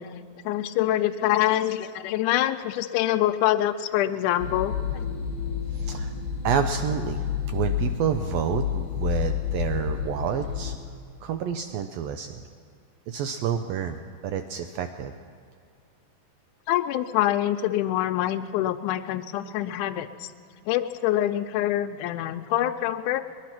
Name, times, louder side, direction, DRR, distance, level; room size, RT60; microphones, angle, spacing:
voice 1, 0.5-5.1 16.7-20.3 20.7-23.3, left 13 dB, 85° left, 7 dB, 2.0 m, -25 dB
sound 1, 4.4-10.8, left 8 dB, 35° right, 0.7 m, -30 dB
voice 2, 5.7-6.1 6.4-10.7 11.2-12.4 13.1-14.0 14.2-15.1, right 8 dB, 90° right, 7 dB, 1.4 m, -29 dB
21.0 x 11.0 x 5.9 m, 2.2 s
omnidirectional pair, 3.6 m